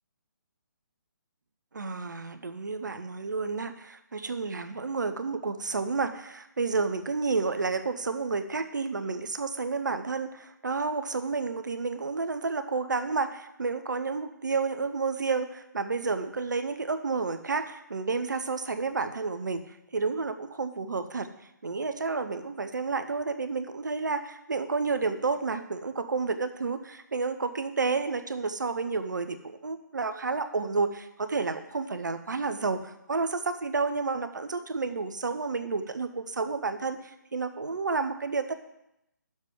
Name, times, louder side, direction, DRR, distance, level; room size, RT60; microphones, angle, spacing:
voice 1, 1.7-19.6 19.9-21.3 21.6-32.8 33.1-38.5, right 4 dB, 65° right, 10 dB, 0.9 m, -30 dB
9.2 x 7.4 x 5.0 m, 0.85 s
figure-of-eight pair, 140°, 10 cm